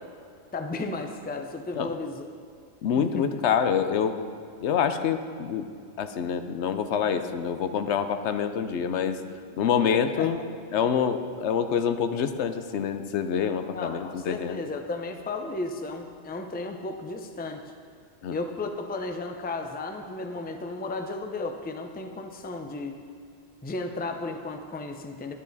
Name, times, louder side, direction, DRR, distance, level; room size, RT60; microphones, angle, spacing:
voice 1, 0.5-2.2 3.0-3.3 9.9-10.3 13.7-17.6 18.3-23.0 23.6-25.3, left 3 dB, 10° left, 5 dB, 0.4 m, -34 dB
voice 2, 2.8-4.2 4.6-5.7 6.0-9.2 9.6-10.4 10.7-14.6 18.2-18.4, left 7 dB, 80° left, 9 dB, 0.9 m, -26 dB
11.0 x 10.5 x 4.0 m, 2.4 s
omnidirectional pair, 1.2 m